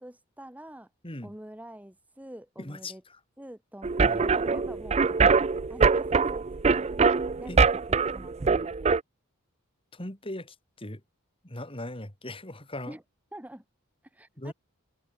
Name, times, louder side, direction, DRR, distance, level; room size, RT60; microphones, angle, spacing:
voice 1, 0.0-0.9 1.2-3.0 3.4-5.0 5.7-7.0 7.4-8.7 12.9-13.0 13.3-13.6 14.1-14.5, right 1 dB, 5° right, 1.5 m, -46 dB
voice 2, 2.6-3.2 4.0-4.2 7.5-7.6 9.9-11.0 11.4-13.0 14.4-14.5, left 1 dB, 25° left, 3.5 m, -39 dB
sound 1, 3.8-9.0, right 5 dB, 30° right, 0.4 m, -23 dB
head